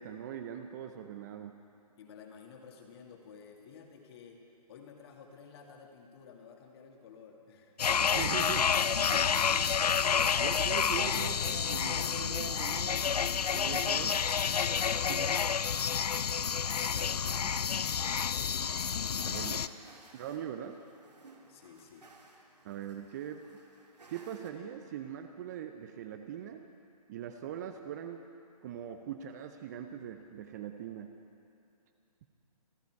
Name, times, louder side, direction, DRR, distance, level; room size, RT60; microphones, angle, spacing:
voice 1, 0.0-1.6 8.0-8.7 9.1-9.6 10.4-13.2 13.5-14.2 15.1-15.3 17.4-17.5 19.3-19.6 20.1-20.8 22.6-23.4 24.1-26.6 27.1-28.2 28.6-31.1, right 9 dB, 25° right, 7 dB, 0.6 m, -41 dB
voice 2, 2.0-4.4 4.7-7.8 10.9-11.9 16.8-17.5 18.0-19.0 19.4-19.7 20.0-20.1 21.5-22.1, left 6 dB, 40° left, 2 dB, 2.0 m, -53 dB
sound 1, 7.8-19.7, left 7 dB, 75° left, 0.5 m, -29 dB
sound 2, 11.3-24.5, right 2 dB, 85° right, 2.3 m, -58 dB
26.5 x 10.5 x 4.7 m, 2.7 s
figure-of-eight pair, 145°, 20 cm